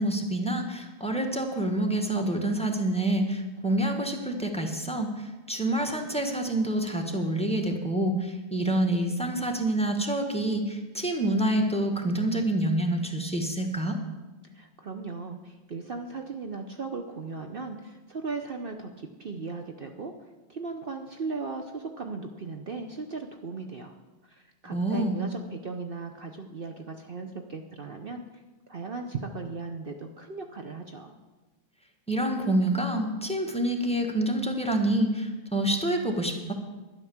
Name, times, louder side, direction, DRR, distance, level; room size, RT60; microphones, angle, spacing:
voice 1, 0.0-14.0 24.7-25.2 32.1-36.5, right 1 dB, 5° left, 3 dB, 1.2 m, -27 dB
voice 2, 14.5-20.1 20.5-23.9 24.2-28.3 28.7-31.2, right 4 dB, 85° right, 5 dB, 0.5 m, -37 dB
12.0 x 10.5 x 7.2 m, 1.2 s
omnidirectional pair, 2.2 m